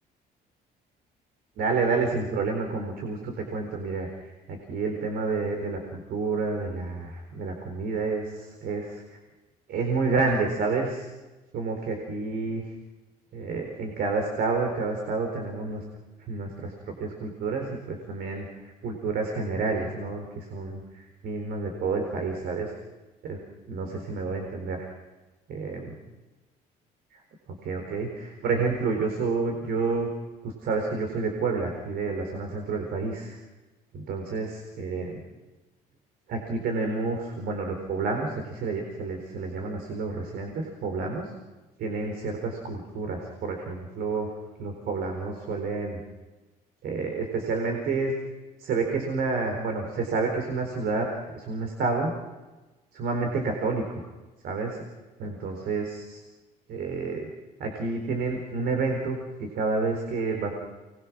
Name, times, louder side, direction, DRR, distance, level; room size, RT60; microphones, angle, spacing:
voice 1, 1.6-9.2 9.7-11.1 11.5-12.6 13.3-15.8 16.2-16.7 17.0-22.7 23.2-23.4 23.7-24.9 25.5-25.9 27.6-30.1 30.4-33.4 33.9-35.2 36.3-41.3 41.8-46.0 46.8-48.1 48.6-52.1 52.9-54.0 54.4-54.8 55.2-56.2 56.7-57.3 57.6-60.5, right 4 dB, 70° right, 3 dB, 4.3 m, -29 dB
30.0 x 22.0 x 6.2 m, 1.2 s
cardioid pair, 110°, 17 cm